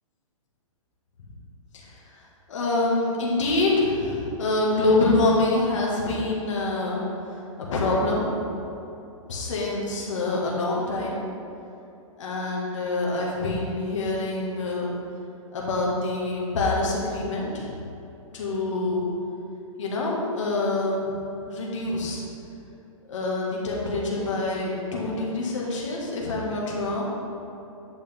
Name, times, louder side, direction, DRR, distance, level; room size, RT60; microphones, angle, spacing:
voice 1, 2.5-7.0 7.6-8.3 9.3-11.2 12.2-14.9 15.5-17.7 18.3-19.0 19.8-21.1 21.5-22.2 23.1-27.1, left 2 dB, 60° left, -4 dB, 1.8 m, -25 dB
8.6 x 6.5 x 3.6 m, 2.9 s
hypercardioid pair, 165°, 18 cm